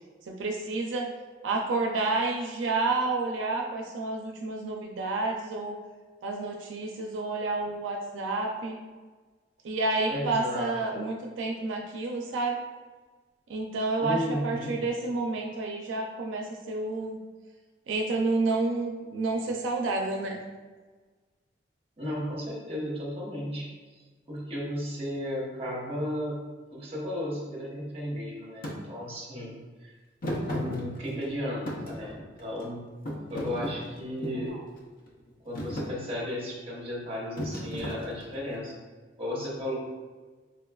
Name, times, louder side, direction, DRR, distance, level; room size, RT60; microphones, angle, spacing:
voice 1, 0.3-1.1 1.4-5.8 6.2-8.8 9.6-12.6 13.5-17.2 17.9-20.4 34.5-34.6, right 3 dB, 90° right, 1 dB, 0.4 m, -30 dB
voice 2, 10.1-11.1 14.0-14.7 22.0-24.0 24.3-26.4 26.7-29.9 30.4-32.9 33.3-34.5 35.4-38.7 39.2-39.8, left 1 dB, 30° right, -4 dB, 0.9 m, -34 dB
Thump thud, 28.6-28.8 30.2-31.3 31.7-32.7 33.1-34.5 35.1-35.3 35.6-35.9 37.4-38.4, equal, 50° left, 0.5 m, -34 dB
4.7 x 2.3 x 2.2 m, 1.4 s
head